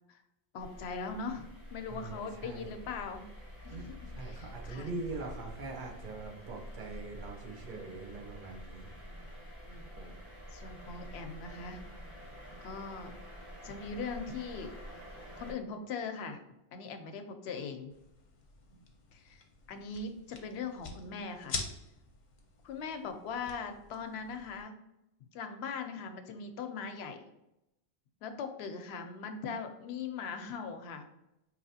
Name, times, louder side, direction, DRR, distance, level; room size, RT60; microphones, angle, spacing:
voice 1, 0.5-3.3 3.6-4.9 9.0-9.3 9.6-9.9 10.5-11.8 12.6-13.1 13.6-14.7 15.4-16.4 16.7-17.9 19.1-21.6 22.6-24.8 25.3-27.2 28.2-31.0, left 5 dB, 90° left, 7 dB, 0.8 m, -40 dB
sound 1, 0.6-15.5, equal, 30° right, 0.9 m, -48 dB
voice 2, 1.9-2.7 3.7-8.9 10.0-10.2, right 3 dB, 55° right, 0 dB, 0.8 m, -43 dB
sound 2, 17.9-24.6, left 4 dB, 50° left, 0.7 m, -46 dB
4.8 x 2.8 x 2.7 m, 0.87 s
omnidirectional pair, 1.0 m